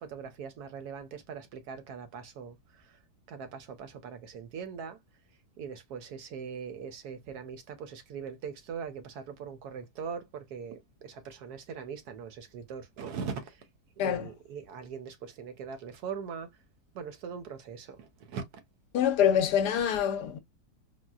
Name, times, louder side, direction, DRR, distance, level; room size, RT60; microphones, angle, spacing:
voice 1, 0.0-3.0 3.3-5.0 5.6-13.7 14.0-16.5 16.9-18.6, right 6 dB, 70° right, 1.0 m, -41 dB
voice 2, 18.9-20.4, left 9 dB, 75° left, 1.1 m, -25 dB
3.8 x 2.1 x 2.3 m
omnidirectional pair, 1.9 m